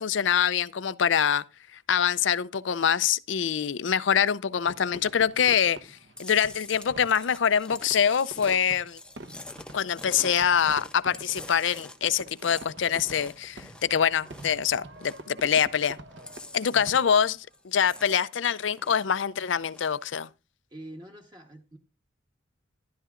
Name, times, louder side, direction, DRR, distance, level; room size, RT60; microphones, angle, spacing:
voice 1, 0.0-1.4 1.9-9.0 9.7-16.0 16.5-17.4 17.6-20.3, left 8 dB, 70° left, 0.5 m, -25 dB
Fireworks, 4.7-17.4, right 2 dB, 65° right, 1.1 m, -47 dB
Chewing mastication, 6.2-14.6 14.9-17.3 17.5-19.2 19.6-20.0, left 2 dB, 5° left, 0.7 m, -46 dB
voice 2, 16.7-17.0 20.7-21.8, right 1 dB, 20° right, 1.1 m, -45 dB
13.0 x 12.0 x 2.5 m
head